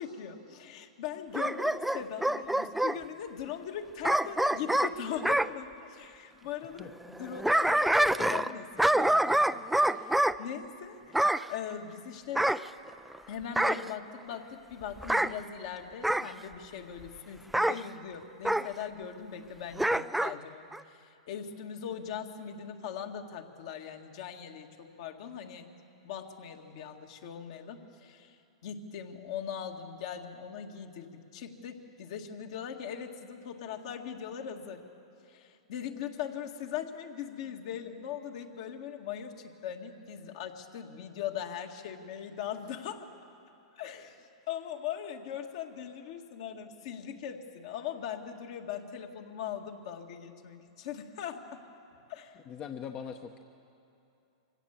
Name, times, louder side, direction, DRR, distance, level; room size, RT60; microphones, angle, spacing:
voice 1, 0.0-11.2 11.5-12.5 13.3-25.7 26.0-28.4 28.6-34.8 35.3-43.1 43.7-51.6 52.1-52.4, left 8 dB, 60° left, 3 dB, 1.9 m, -40 dB
Bark / Growling, 1.3-3.0 4.0-5.5 7.1-8.5 8.8-10.4 11.1-11.5 12.4-13.2 13.6-13.9 15.0-15.3 16.0-16.3 17.5-17.8 18.4-18.7 19.8-20.3 20.7-20.8, right 1 dB, 5° right, 0.4 m, -26 dB
voice 2, 52.5-53.4, left 7 dB, 35° left, 6 dB, 0.9 m, -40 dB
24.5 x 16.5 x 7.3 m, 2.7 s
hypercardioid pair, 110°, 3 cm